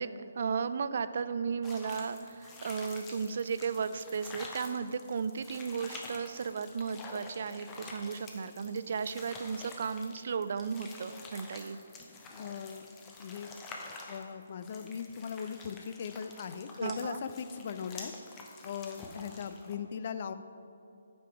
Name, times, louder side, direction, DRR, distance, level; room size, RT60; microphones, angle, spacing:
voice 1, 0.0-11.8 16.8-17.2, right 5 dB, 55° right, 13 dB, 0.3 m, -35 dB
sound 1, 1.6-19.7, left 3 dB, 20° left, 0.8 m, -48 dB
voice 2, 12.3-12.8 13.2-13.5 14.1-18.1 18.6-20.3, left 7 dB, 45° left, 10 dB, 0.4 m, -39 dB
8.8 x 5.1 x 4.7 m, 2.5 s
figure-of-eight pair, 145°, 0 cm